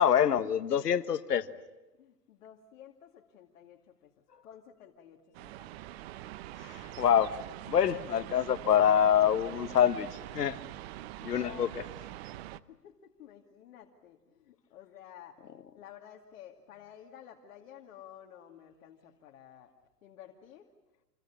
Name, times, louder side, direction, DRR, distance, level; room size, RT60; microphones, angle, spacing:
voice 1, 0.0-1.5 6.6-7.4 7.7-10.1 10.3-10.6 11.2-11.7, left 9 dB, 80° left, 12 dB, 1.5 m, -25 dB
voice 2, 2.0-4.1 4.4-5.7 11.3-11.9 12.4-15.4 15.7-19.7 20.0-20.7, left 9 dB, 55° left, 1 dB, 2.6 m, -53 dB
sound 1, 5.3-12.6, right 15 dB, 40° right, 0.9 m, -44 dB
28.5 x 22.0 x 8.7 m, 1.1 s
hypercardioid pair, 120°, 47 cm